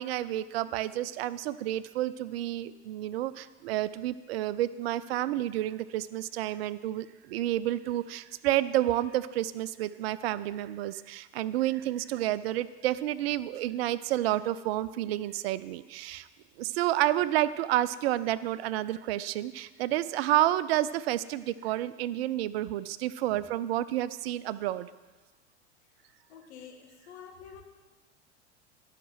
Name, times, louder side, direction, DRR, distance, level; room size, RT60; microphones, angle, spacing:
voice 1, 0.0-16.3 16.6-24.9, right 14 dB, 60° right, 16 dB, 0.5 m, -30 dB
voice 2, 26.3-27.6, left 7 dB, 65° left, 3 dB, 1.6 m, -48 dB
10.5 x 5.8 x 6.6 m, 1.3 s
figure-of-eight pair, 80°, 35 cm